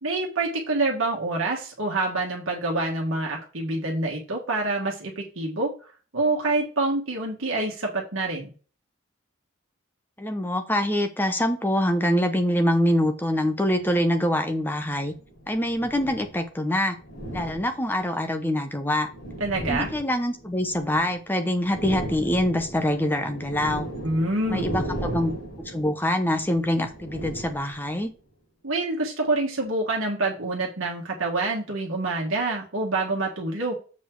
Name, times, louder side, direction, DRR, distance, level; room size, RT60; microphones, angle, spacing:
voice 1, 0.0-5.7 6.1-8.5 19.4-19.9 24.0-24.7 28.6-33.7, right 2 dB, 75° right, -1 dB, 1.5 m, -26 dB
voice 2, 10.2-15.1 15.5-17.0 17.3-19.1 19.7-23.9 24.5-25.3 25.6-28.1, left 1 dB, 10° left, 6 dB, 0.8 m, -25 dB
sound 1, 13.8-13.9 14.9-16.4 17.0-18.1 18.8-21.2 21.5-28.1, right 1 dB, 55° left, 4.1 m, -36 dB
7.3 x 4.3 x 4.5 m, 0.37 s
head